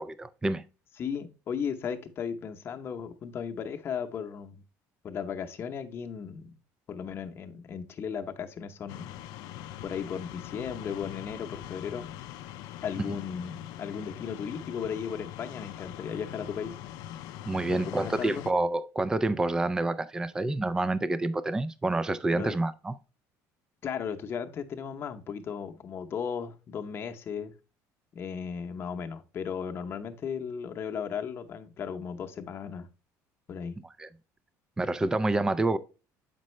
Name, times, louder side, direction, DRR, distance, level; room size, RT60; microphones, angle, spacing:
voice 1, 0.1-0.7 13.1-13.2 17.5-22.9 34.0-34.1 34.8-35.8, right 2 dB, 10° right, 0.3 m, -28 dB
voice 2, 1.0-4.6 5.0-6.5 6.9-9.1 9.8-12.1 12.8-16.8 17.7-18.5 22.3-22.6 23.8-27.5 28.1-32.9 33.5-33.8, left 7 dB, 35° left, 0.8 m, -36 dB
sound 1, 8.9-18.5, left 12 dB, 75° left, 0.4 m, -42 dB
7.4 x 5.3 x 3.1 m
cardioid pair, 140°, 7 cm